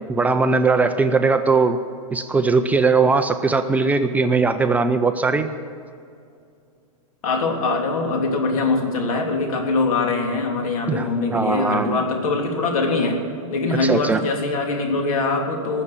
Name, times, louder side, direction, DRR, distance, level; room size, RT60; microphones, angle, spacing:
voice 1, 0.1-1.8 2.1-5.5 10.9-12.0 13.8-14.2, right 4 dB, 10° right, 8 dB, 0.4 m, -19 dB
voice 2, 7.2-13.2 13.5-15.8, left 3 dB, 80° left, 2 dB, 3.3 m, -22 dB
19.0 x 7.3 x 9.7 m, 2.4 s
supercardioid pair, 150°, 18 cm